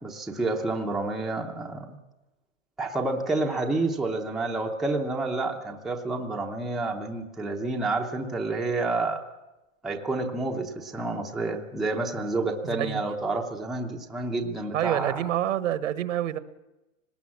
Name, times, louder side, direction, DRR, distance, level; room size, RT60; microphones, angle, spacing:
voice 1, 0.0-2.0 2.8-9.2 9.8-15.2, right 2 dB, ahead, 0 dB, 0.8 m, -29 dB
voice 2, 12.6-13.0 14.7-16.4, right 11 dB, 70° right, 13 dB, 1.4 m, -27 dB
19.5 x 18.0 x 7.3 m, 1.0 s
hypercardioid pair, 160°, 39 cm